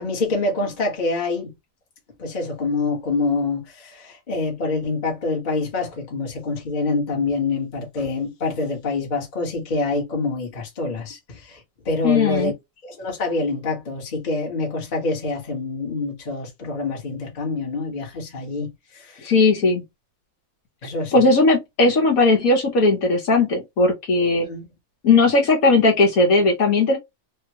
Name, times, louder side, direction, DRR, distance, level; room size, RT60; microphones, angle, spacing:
voice 1, 0.0-1.5 2.2-12.5 12.8-19.3 20.8-21.3 24.4-24.6, left 3 dB, 30° left, 1.1 m, -26 dB
voice 2, 12.0-12.5 19.2-19.8 21.1-24.5 25.0-27.0, left 3 dB, 65° left, 1.4 m, -17 dB
3.5 x 2.2 x 2.9 m
omnidirectional pair, 1.7 m